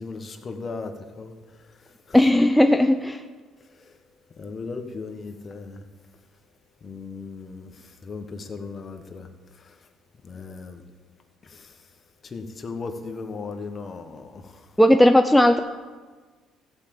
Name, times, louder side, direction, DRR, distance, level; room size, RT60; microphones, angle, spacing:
voice 1, 0.0-2.2 3.7-4.0 4.3-5.8 6.8-9.8 10.2-10.8 11.4-11.9 12.2-14.7, left 4 dB, 40° left, 1.3 m, -37 dB
voice 2, 2.1-3.2 14.8-15.6, left 1 dB, 5° left, 0.5 m, -16 dB
15.0 x 5.2 x 7.7 m
supercardioid pair, 85°, 0 cm